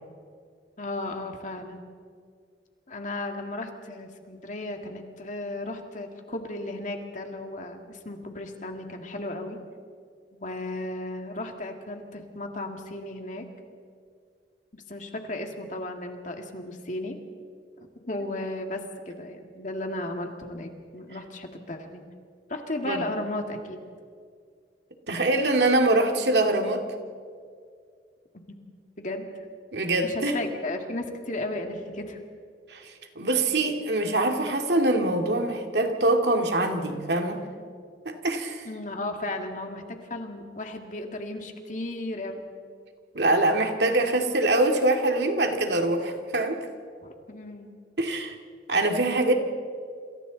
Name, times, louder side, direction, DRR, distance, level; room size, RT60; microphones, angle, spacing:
voice 1, 0.8-1.8 2.9-9.6 10.4-13.4 14.7-17.2 18.0-22.1 22.5-23.8 29.0-29.2 30.0-32.2 38.6-39.8 40.1-42.4 47.0-47.7, left 1 dB, 45° left, 3 dB, 2.2 m, -35 dB
voice 2, 25.1-26.8 29.7-30.4 32.7-37.5 38.1-38.7 43.1-46.6 48.0-48.3 48.7-49.3, right 2 dB, 75° right, 3 dB, 2.3 m, -24 dB
28.5 x 27.0 x 4.1 m, 2.1 s
head